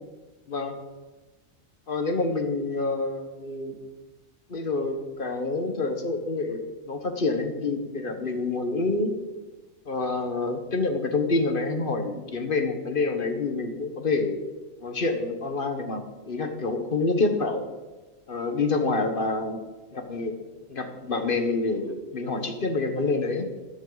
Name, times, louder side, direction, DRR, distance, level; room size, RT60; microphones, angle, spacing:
voice 1, 1.9-3.7 4.5-9.1 9.9-14.4 14.8-17.7 18.3-19.6 19.9-20.3 20.7-23.5, left 3 dB, 40° left, 6 dB, 1.4 m, -27 dB
13.5 x 11.0 x 4.0 m, 1.2 s
omnidirectional pair, 1.5 m